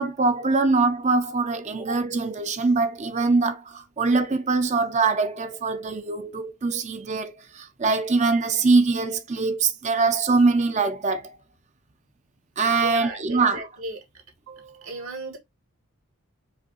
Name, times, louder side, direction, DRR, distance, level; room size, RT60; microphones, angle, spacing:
voice 1, 0.0-11.3 12.6-13.6, right 4 dB, 30° right, 0.4 m, -23 dB
voice 2, 12.8-14.0 14.5-15.4, right 2 dB, 65° right, 1.2 m, -35 dB
4.9 x 2.7 x 2.8 m
head